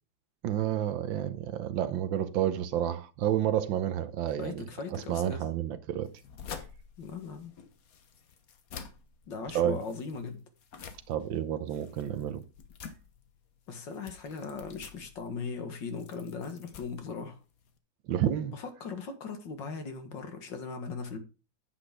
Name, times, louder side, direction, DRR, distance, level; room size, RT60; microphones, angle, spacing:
voice 1, 0.4-4.7 4.9-6.1 6.5-6.6 9.5-9.8 11.1-12.4 18.1-18.6, right 11 dB, 85° right, 1.6 m, -30 dB
voice 2, 4.4-5.5 7.0-7.5 9.3-10.4 13.7-17.4 18.5-21.2, left 5 dB, 70° left, 2.3 m, -39 dB
sound 1, 6.0-17.8, left 6 dB, 55° left, 1.4 m, -49 dB
9.8 x 8.1 x 3.6 m
omnidirectional pair, 2.0 m